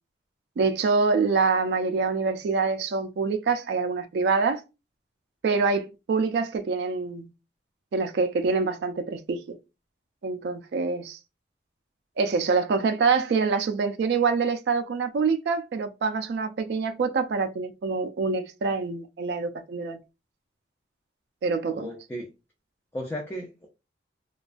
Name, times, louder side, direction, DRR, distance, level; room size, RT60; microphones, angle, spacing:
voice 1, 0.6-4.6 5.4-7.3 7.9-9.6 10.2-11.2 12.2-20.0 21.4-21.9, right 4 dB, 65° right, 0.3 m, -25 dB
voice 2, 21.7-22.3 22.9-23.7, equal, 10° left, 0.4 m, -35 dB
2.3 x 2.2 x 2.4 m
head